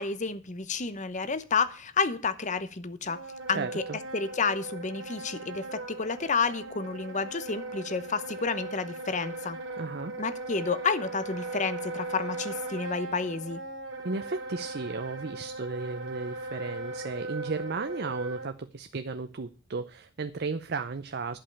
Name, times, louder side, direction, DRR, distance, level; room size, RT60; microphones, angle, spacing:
voice 1, 0.0-3.2 3.5-3.8 4.1-9.6 10.2-13.6, left 5 dB, 40° left, 13 dB, 0.9 m, -30 dB
Wind instrument woodwind instrument, 3.0-18.5, right 2 dB, 80° right, 2.9 m, -38 dB
voice 2, 3.5-4.0 9.8-10.1 14.0-21.4, right 4 dB, 55° right, 9 dB, 0.6 m, -34 dB
11.5 x 5.4 x 8.7 m, 0.39 s
head